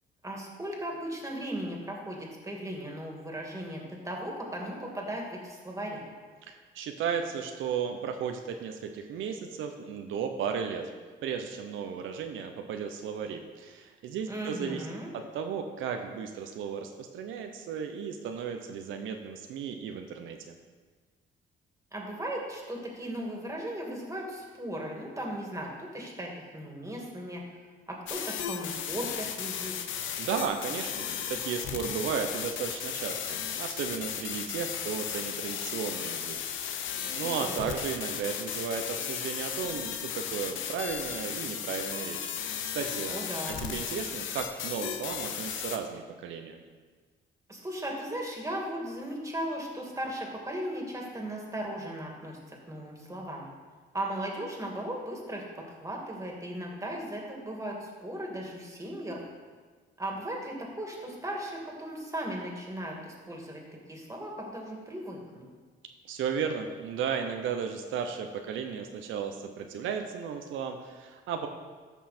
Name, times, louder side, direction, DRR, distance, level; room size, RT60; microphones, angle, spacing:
voice 1, 0.2-6.0 14.3-15.1 21.9-27.4 27.9-29.8 37.0-37.7 43.1-43.7 47.5-53.5 53.9-59.2 60.0-63.6 63.9-65.4, right 1 dB, 15° right, 0 dB, 2.4 m, -37 dB
voice 2, 6.5-10.9 11.2-14.9 15.3-20.6 30.2-42.3 42.7-43.2 43.6-46.6 66.1-71.5, right 7 dB, 80° right, 5 dB, 0.8 m, -34 dB
sound 1, 28.1-45.8, left 8 dB, 80° left, 0.8 m, -35 dB
13.5 x 5.5 x 4.4 m, 1.5 s
cardioid pair, 90°, 20 cm